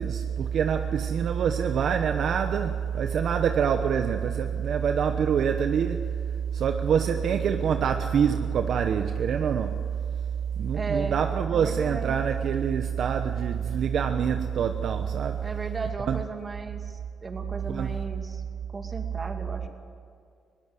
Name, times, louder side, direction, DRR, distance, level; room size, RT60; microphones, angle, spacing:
voice 1, 0.0-6.2 6.5-9.9 10.6-15.4 16.1-16.2 17.7-18.0, right 7 dB, 65° right, 1.0 m, -25 dB
voice 2, 10.7-11.2 11.5-12.1 15.4-18.4 18.7-19.7, right 3 dB, 35° right, 2.6 m, -35 dB
21.0 x 17.5 x 7.7 m
cardioid pair, 90°, 0 cm